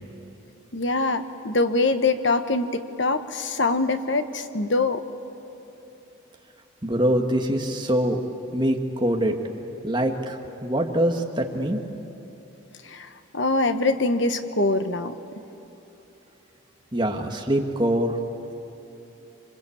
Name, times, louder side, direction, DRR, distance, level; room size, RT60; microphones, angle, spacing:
voice 1, 0.7-5.0 12.9-13.1 13.3-15.1, left 3 dB, 60° left, 9 dB, 1.2 m, -23 dB
voice 2, 6.8-8.2 8.5-9.4 9.8-11.8 16.9-18.2, right 1 dB, 20° right, 3 dB, 1.7 m, -24 dB
27.0 x 25.0 x 8.7 m, 3.0 s
head